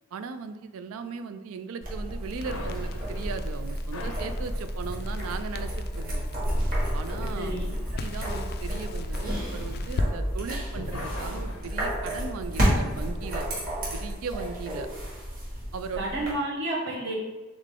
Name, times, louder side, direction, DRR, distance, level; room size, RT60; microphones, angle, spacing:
voice 1, 0.1-6.3 6.9-7.5 8.0-13.5 13.9-14.9 15.7-16.0 16.3-16.4, right 5 dB, 75° right, 11 dB, 0.3 m, -38 dB
sound 1, 1.8-16.3, equal, 40° right, 1.4 m, -31 dB
Crackle, 2.2-10.1, left 2 dB, 45° left, 0.3 m, -38 dB
sound 2, 2.4-10.4 10.7-13.0, left 2 dB, 80° left, 0.6 m, -44 dB
voice 2, 7.3-7.8 15.9-17.1, right 1 dB, 55° right, -3 dB, 0.9 m, -31 dB
3.8 x 3.6 x 3.6 m, 1.2 s
head